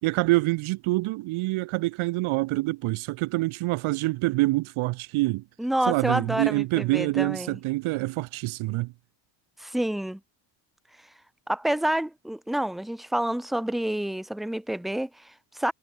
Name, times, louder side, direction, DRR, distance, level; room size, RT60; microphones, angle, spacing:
voice 1, 0.0-5.4 5.9-8.9, right 21 dB, 75° right, 2.2 m, -26 dB
voice 2, 5.6-7.6 9.6-10.2 11.5-15.7, right 1 dB, ahead, 0.3 m, -28 dB
cardioid pair, 100°, 49 cm